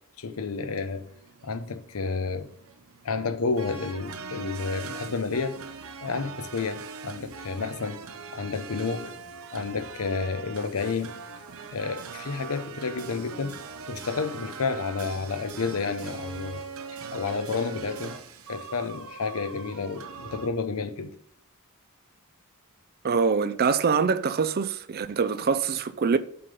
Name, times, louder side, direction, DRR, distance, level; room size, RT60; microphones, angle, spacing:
voice 1, 0.2-1.1 1.4-2.5 3.0-5.6 6.0-8.0 8.3-9.1 9.5-11.2 11.7-13.6 13.9-16.6 17.1-18.2 18.5-21.1, left 4 dB, 80° left, 0.7 m, -30 dB
sound 1, 0.7-20.5, right 5 dB, 75° right, 0.8 m, -41 dB
voice 2, 23.0-26.2, right 5 dB, 45° right, 0.5 m, -24 dB
6.9 x 5.2 x 5.4 m
head